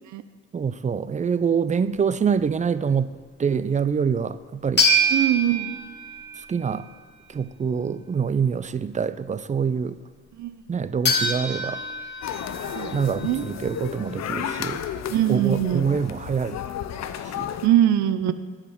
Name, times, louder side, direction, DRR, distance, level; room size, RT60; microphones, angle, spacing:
voice 1, 0.5-3.1 3.4-4.8 6.5-6.8 7.3-9.9 10.7-11.8 12.9-14.8 15.3-16.6 17.4-17.5, right 6 dB, 25° right, 14 dB, 0.5 m, -25 dB
sound 1, 4.8-6.8 11.1-14.1, equal, 35° left, 1.8 m, -26 dB
voice 2, 5.1-5.8 10.4-10.6 12.7-13.5 15.1-15.9 17.6-18.3, right 11 dB, 70° right, 12 dB, 0.7 m, -22 dB
sound 2, 12.2-17.7, left 9 dB, 60° left, 0.7 m, -33 dB
12.0 x 5.0 x 7.8 m, 1.4 s
cardioid pair, 90°, 30 cm